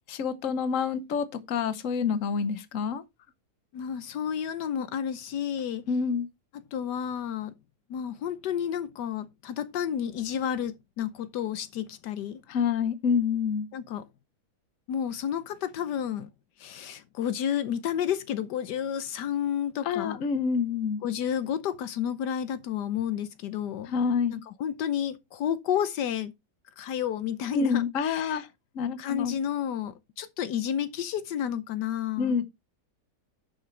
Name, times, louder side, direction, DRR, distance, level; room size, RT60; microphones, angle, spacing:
voice 1, 0.1-3.0 5.9-6.3 12.5-13.7 19.8-21.0 23.9-24.4 27.5-28.5 28.7-29.4 32.2-32.5, left 6 dB, 55° left, 1.3 m, -27 dB
voice 2, 3.7-5.8 6.7-7.5 7.9-12.4 13.7-14.1 14.9-16.3 16.6-20.2 21.0-23.9 24.3-26.3 26.8-28.4 29.0-32.4, left 9 dB, 80° left, 1.4 m, -31 dB
11.0 x 6.5 x 3.2 m
omnidirectional pair, 1.8 m